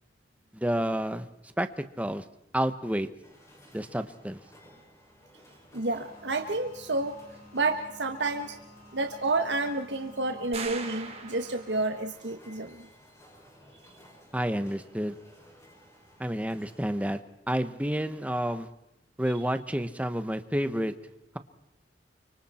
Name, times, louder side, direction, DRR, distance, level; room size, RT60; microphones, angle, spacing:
voice 1, 0.5-1.3 1.6-1.7 2.0-2.2 2.5-3.1 3.7-4.4 14.3-15.2 16.2-17.2 17.5-18.7 19.2-20.9, equal, 10° right, 10 dB, 1.1 m, -29 dB
sound 1, 3.2-17.1, equal, 20° left, 6.3 m, -56 dB
voice 2, 5.7-7.2 7.5-8.6 8.9-12.9, right 3 dB, 85° right, 5 dB, 1.5 m, -30 dB
sound 2, 6.0-12.0, left 1 dB, 55° left, 7.5 m, -52 dB
sound 3, 10.5-12.0, right 5 dB, 35° right, 2.8 m, -39 dB
29.0 x 25.5 x 4.4 m, 0.82 s
head